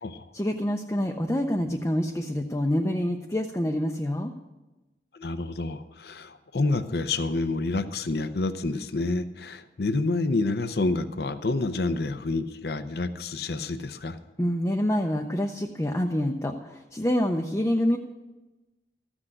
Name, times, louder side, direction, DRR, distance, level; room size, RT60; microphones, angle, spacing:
voice 1, 0.3-4.3 14.4-18.0, equal, 15° left, 2 dB, 0.5 m, -26 dB
voice 2, 5.1-14.2, left 2 dB, 65° left, 10 dB, 0.6 m, -28 dB
14.5 x 6.2 x 7.7 m, 1.1 s
head